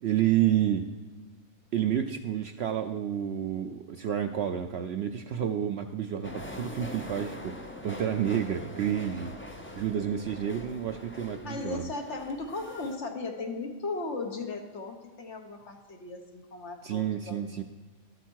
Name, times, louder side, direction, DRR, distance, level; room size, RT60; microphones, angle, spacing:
voice 1, 0.0-0.8 1.7-9.3 9.7-11.9 16.8-17.6, right 10 dB, 65° right, 7 dB, 0.7 m, -29 dB
sound 1, 6.2-13.0, left 1 dB, 15° left, 0.5 m, -43 dB
voice 2, 11.4-17.4, left 3 dB, 55° left, 3 dB, 1.4 m, -37 dB
12.0 x 7.9 x 4.6 m, 1.4 s
omnidirectional pair, 1.5 m